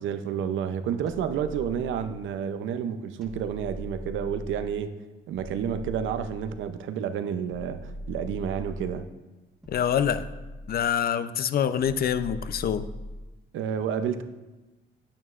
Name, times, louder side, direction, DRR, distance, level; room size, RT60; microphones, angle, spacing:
voice 1, 0.0-4.9 5.3-9.1 13.5-14.2, right 8 dB, 75° right, 10 dB, 0.6 m, -30 dB
sound 1, 1.1-2.4 3.2-4.8 5.3-6.8 7.5-9.1 9.6-11.0 11.8-13.4, equal, ahead, 1.4 m, -41 dB
voice 2, 9.7-10.2 10.7-12.8, left 9 dB, 50° left, 13 dB, 0.5 m, -25 dB
9.0 x 8.6 x 2.4 m, 1.1 s
cardioid pair, 90°, 20 cm